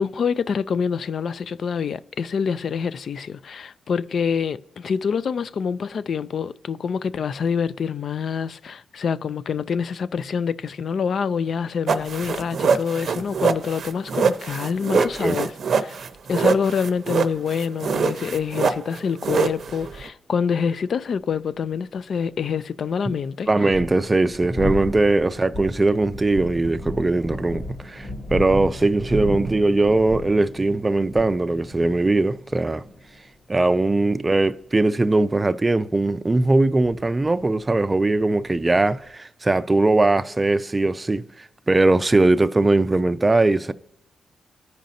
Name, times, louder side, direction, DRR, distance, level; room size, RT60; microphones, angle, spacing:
voice 1, 0.0-15.5 15.8-16.0 16.3-23.5, left 6 dB, 60° left, 0.3 m, -26 dB
sound 1, 11.9-20.1, right 6 dB, 60° right, 0.6 m, -24 dB
voice 2, 14.9-15.4 23.5-32.8 33.5-41.2 41.7-43.7, right 2 dB, 20° right, 0.4 m, -20 dB
sound 2, 23.5-39.1, left 1 dB, 40° left, 1.7 m, -34 dB
14.0 x 5.1 x 2.7 m
cardioid pair, 95°, 0 cm